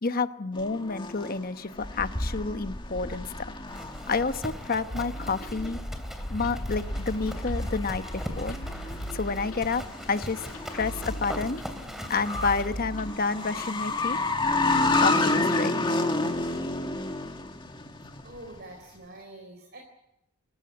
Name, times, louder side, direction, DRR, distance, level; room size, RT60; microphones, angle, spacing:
voice 1, 0.0-3.3 4.1-5.8 6.3-8.6 9.1-10.4 10.7-11.6 12.1-14.2 14.9-16.0, left 4 dB, 40° left, 11 dB, 1.0 m, -29 dB
sound 1, 0.5-18.6, left 2 dB, 20° left, 2.0 m, -31 dB
Livestock farm animals working animals, 3.6-14.4, equal, ahead, 2.9 m, -41 dB
sound 2, 4.9-13.1, right 1 dB, 85° left, 5.9 m, -39 dB
voice 2, 18.2-19.8, right 1 dB, 50° right, 3 dB, 4.3 m, -45 dB
29.0 x 15.0 x 9.7 m, 0.85 s
head